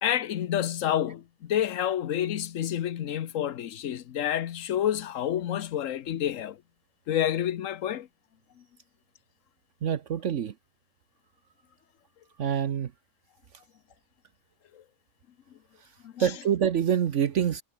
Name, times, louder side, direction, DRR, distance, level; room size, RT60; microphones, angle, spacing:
voice 1, 0.0-6.6 7.1-8.1 14.7-14.8 16.0-16.3, left 10 dB, 70° left, 1.2 m, -29 dB
voice 2, 9.8-10.5 12.4-12.9 16.2-17.6, right 9 dB, 65° right, 1.2 m, -26 dB
omnidirectional pair, 1.4 m